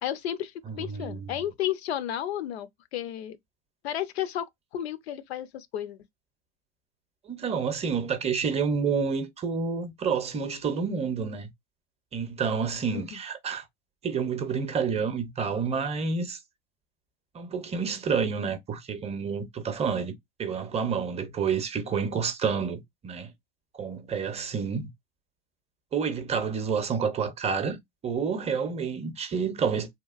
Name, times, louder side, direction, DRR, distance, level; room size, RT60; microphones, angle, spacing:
voice 1, 0.0-3.4 3.8-4.5 4.7-6.0 12.9-13.0, left 11 dB, 85° left, 0.5 m, -32 dB
voice 2, 0.7-1.3 7.3-11.5 12.1-13.6 14.0-16.4 17.3-20.1 20.4-23.3 23.7-24.9 25.9-29.9, right 6 dB, 20° right, 0.6 m, -29 dB
2.8 x 2.3 x 2.4 m
hypercardioid pair, 100°, 31 cm